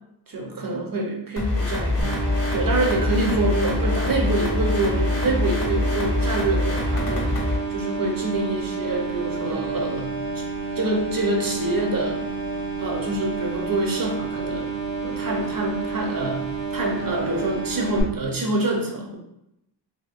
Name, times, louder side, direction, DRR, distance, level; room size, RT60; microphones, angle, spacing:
voice 1, 0.3-2.2 2.5-7.4 7.7-10.5 10.8-12.2 12.8-14.7 15.0-19.2, right 2 dB, 50° right, 1 dB, 0.6 m, -26 dB
sound 1, 1.4-7.6, left 2 dB, 35° left, 0.8 m, -25 dB
sound 2, 2.0-18.0, right 4 dB, 90° right, 1.3 m, -30 dB
2.9 x 2.7 x 2.4 m, 0.82 s
wide cardioid pair, 85°, 44 cm